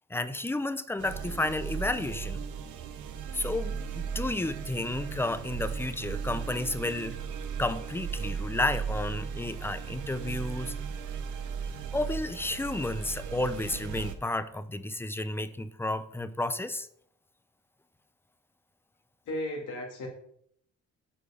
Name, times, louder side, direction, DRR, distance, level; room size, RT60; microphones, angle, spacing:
voice 1, 0.1-2.4 3.3-7.2 7.6-10.7 11.9-16.9, left 2 dB, 10° left, 12 dB, 0.6 m, -32 dB
sound 1, 1.0-14.2, right 6 dB, 80° right, 0.9 m, -36 dB
voice 2, 19.2-20.1, left 1 dB, 80° left, -1 dB, 2.5 m, -34 dB
8.6 x 4.9 x 5.1 m, 0.68 s
cardioid pair, 90°, 30 cm